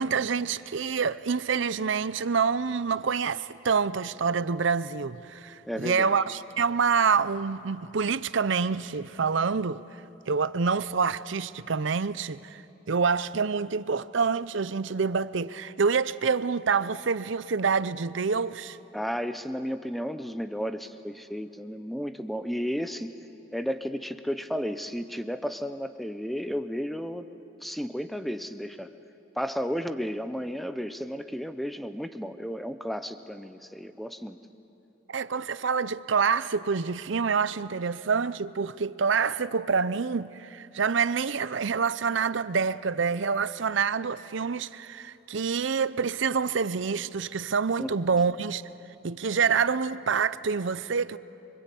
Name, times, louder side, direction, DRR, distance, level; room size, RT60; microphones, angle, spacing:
voice 1, 0.0-9.8 10.3-12.6 12.9-18.8 35.1-48.6 49.0-51.2, right 5 dB, 65° right, 0.6 m, -27 dB
voice 2, 5.7-6.1 18.9-23.1 23.5-27.3 27.6-28.9 29.4-34.4 47.8-47.9, equal, ahead, 0.7 m, -33 dB
26.5 x 24.5 x 8.4 m
head